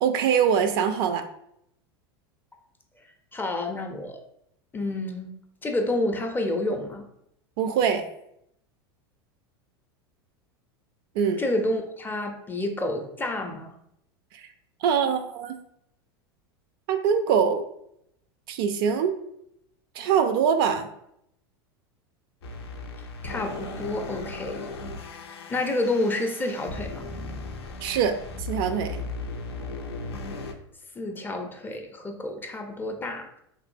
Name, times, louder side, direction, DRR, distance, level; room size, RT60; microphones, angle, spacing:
voice 1, 0.0-1.2 7.6-8.0 11.2-11.4 14.8-15.6 16.9-17.6 18.5-19.1 20.0-20.9 27.8-28.2 28.5-29.0, right 7 dB, 65° right, 8 dB, 0.4 m, -23 dB
voice 2, 3.3-4.2 4.7-5.3 5.6-7.0 11.4-13.7 23.2-24.7 25.5-27.1 31.0-33.3, left 2 dB, 15° left, 4 dB, 0.4 m, -29 dB
sound 1, 22.4-30.5, left 3 dB, 85° left, 0.4 m, -36 dB
3.0 x 2.6 x 2.5 m, 0.75 s
hypercardioid pair, 95°, 13 cm